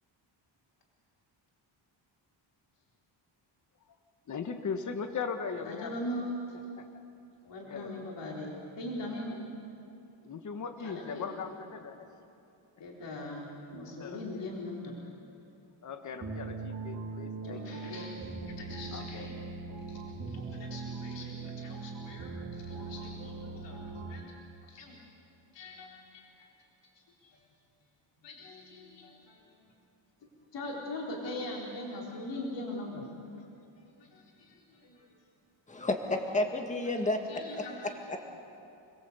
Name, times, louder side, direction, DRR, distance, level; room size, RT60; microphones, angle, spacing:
voice 1, 4.3-5.9 6.8-7.0 7.7-8.1 9.3-9.4 10.2-12.0 14.0-14.5 15.8-17.9 18.9-19.3, left 5 dB, 35° left, 7 dB, 1.4 m, -39 dB
voice 2, 5.5-6.6 7.4-9.3 10.8-11.2 12.8-14.9 17.4-19.4 19.9-24.3 24.6-25.0 25.5-26.5 27.2-27.4 28.2-29.4 30.5-33.1 33.9-35.0 37.0-38.2, left 1 dB, 60° left, -3 dB, 4.4 m, -41 dB
sound 1, 16.2-24.3, right 4 dB, 40° right, 3.6 m, -40 dB
voice 3, 35.7-37.3 37.6-37.7 38.1-38.2, left 2 dB, 15° left, 3 dB, 1.8 m, -30 dB
29.5 x 21.0 x 8.3 m, 2.8 s
wide cardioid pair, 170°, 47 cm